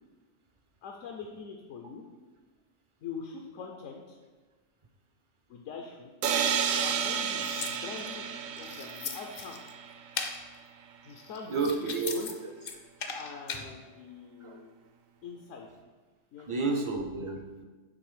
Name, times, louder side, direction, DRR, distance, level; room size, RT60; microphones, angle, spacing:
voice 1, 0.8-2.0 3.0-4.2 5.5-6.1 6.8-9.6 11.0-12.3 13.1-14.9 15.2-15.7 16.3-16.8, left 6 dB, 80° left, 1 dB, 1.0 m, -43 dB
sound 1, 6.2-10.0, right 7 dB, 90° right, 1.0 m, -31 dB
sound 2, 6.9-8.1 8.6-9.7 10.1-10.4 11.1-12.3 12.6-13.6, left 6 dB, 55° left, 0.6 m, -39 dB
voice 2, 11.5-12.2 13.5-13.6 14.4-14.6 16.5-17.6, right 4 dB, 40° right, 2 dB, 0.4 m, -31 dB
7.8 x 3.3 x 4.9 m, 1.3 s
omnidirectional pair, 1.3 m